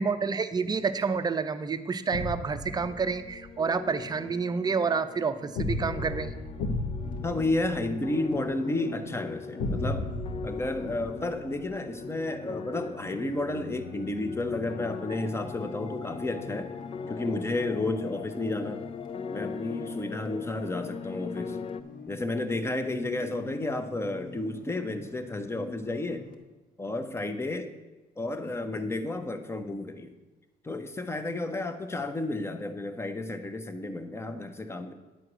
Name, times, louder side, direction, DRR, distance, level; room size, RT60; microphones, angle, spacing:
voice 1, 0.0-6.4, right 5 dB, 25° right, 10 dB, 0.6 m, -29 dB
sound 1, 2.1-3.5 5.6-8.5 9.6-11.7, left 2 dB, 85° left, 1.1 m, -34 dB
sound 2, 2.6-21.8, left 6 dB, 35° left, 0.4 m, -41 dB
sound 3, 7.0-26.4, left 4 dB, 55° left, 1.3 m, -46 dB
voice 2, 7.2-10.1 10.4-16.7 17.0-18.9 19.3-21.6 22.1-26.3 26.8-27.7 28.2-30.1 30.6-34.9, left 2 dB, 15° left, 8 dB, 0.8 m, -32 dB
9.9 x 4.6 x 7.9 m, 1.1 s
cardioid pair, 110°, 17 cm